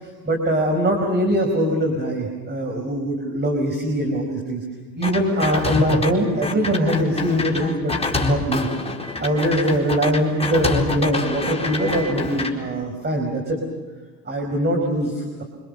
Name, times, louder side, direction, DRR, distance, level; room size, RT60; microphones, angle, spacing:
voice 1, 0.0-4.6 4.9-8.7 9.2-13.6 14.3-15.4, equal, 25° right, 1 dB, 5.3 m, -22 dB
sound 1, 5.0-6.1 6.4-12.5, left 3 dB, 15° left, 4.3 m, -26 dB
26.5 x 25.5 x 7.0 m, 1.4 s
figure-of-eight pair, 65°, 44 cm